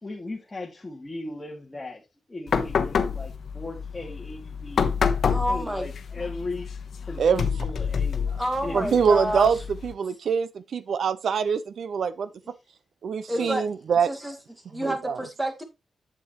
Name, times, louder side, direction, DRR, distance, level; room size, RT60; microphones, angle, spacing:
voice 1, 0.0-2.0 2.3-4.9 5.5-6.7 7.1-8.3 8.6-9.1 13.3-13.6, left 2 dB, 20° left, 2.1 m, -37 dB
sound 1, 2.5-9.9, left 6 dB, 70° left, 1.0 m, -28 dB
voice 2, 5.3-5.9 8.3-9.5 13.3-13.7 14.0-14.4 14.7-15.6, equal, 10° right, 1.9 m, -29 dB
voice 3, 8.7-9.6 9.8-12.3 13.0-14.1 14.8-15.2, right 6 dB, 75° right, 0.6 m, -24 dB
8.1 x 7.6 x 3.1 m
cardioid pair, 100°, 0 cm